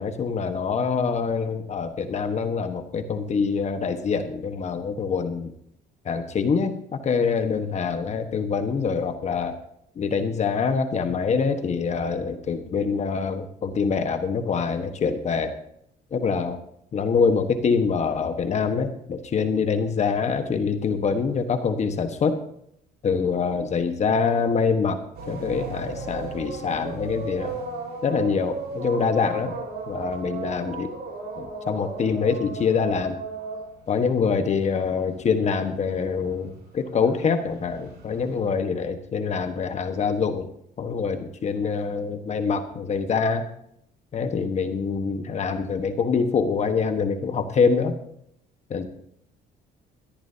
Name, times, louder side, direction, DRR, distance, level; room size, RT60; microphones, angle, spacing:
voice 1, 0.0-5.5 6.0-9.6 10.0-15.5 16.1-16.6 16.9-22.4 23.0-25.0 25.3-27.5 28.0-29.5 29.9-30.9 31.4-33.2 33.9-40.5 40.8-43.4 44.1-47.9 48.7-48.8, left 5 dB, 40° left, 7 dB, 1.3 m, -25 dB
sound 1, 25.1-35.1 35.4-38.4, right 3 dB, 70° right, 6.6 m, -35 dB
17.5 x 13.5 x 2.8 m, 0.71 s
cardioid pair, 110°, 17 cm